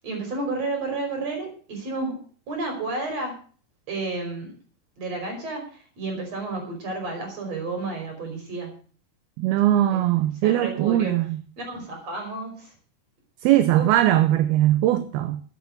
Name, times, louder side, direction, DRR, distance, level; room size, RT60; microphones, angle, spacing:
voice 1, 0.0-2.2 2.5-3.4 3.9-4.5 5.0-8.7 9.7-10.0 10.4-11.1 11.6-12.7 13.7-13.9, right 3 dB, 40° right, 6.1 m, -31 dB
voice 2, 9.4-11.4 13.4-15.4, right 13 dB, 80° right, 2.7 m, -20 dB
13.5 x 9.6 x 6.5 m
omnidirectional pair, 4.5 m